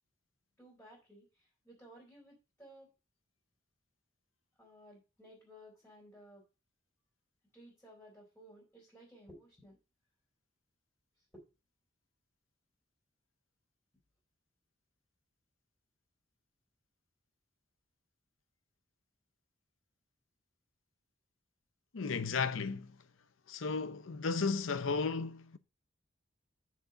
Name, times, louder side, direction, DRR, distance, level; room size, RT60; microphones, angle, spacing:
voice 1, 0.6-2.9 4.6-6.5 7.5-9.8 11.2-11.4, equal, 10° left, 3.6 m, -57 dB
voice 2, 21.9-22.9 23.5-25.6, left 4 dB, 80° left, 0.7 m, -34 dB
6.7 x 4.8 x 6.7 m
head